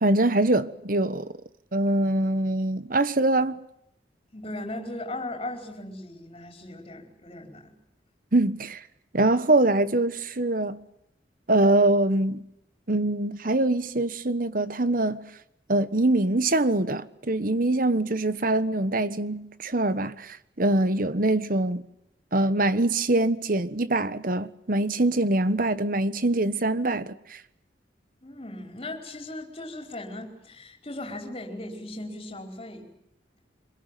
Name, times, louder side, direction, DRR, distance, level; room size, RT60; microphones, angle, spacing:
voice 1, 0.0-1.3 1.7-3.6 8.3-8.8 9.1-10.8 11.5-12.4 12.9-15.3 15.7-21.8 22.3-27.4, right 2 dB, 50° right, 1.3 m, -24 dB
voice 2, 4.3-7.7 28.2-32.9, left 1 dB, 30° left, 4.9 m, -38 dB
26.0 x 22.5 x 9.2 m
head